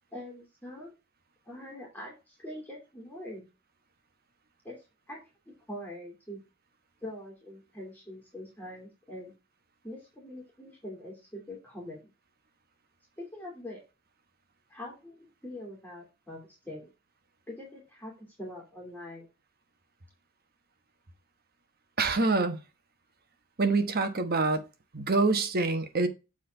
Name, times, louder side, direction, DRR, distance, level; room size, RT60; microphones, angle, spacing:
voice 1, 0.1-0.9 1.5-3.5 4.6-4.8 5.1-5.2 5.5-6.4 7.0-9.3 9.8-12.1 13.2-13.8 14.7-16.9 17.5-19.3, left 1 dB, 10° left, 2.7 m, -43 dB
voice 2, 22.0-22.6 23.6-24.6 24.9-26.1, right 3 dB, 45° right, 1.1 m, -26 dB
7.4 x 4.3 x 4.5 m
head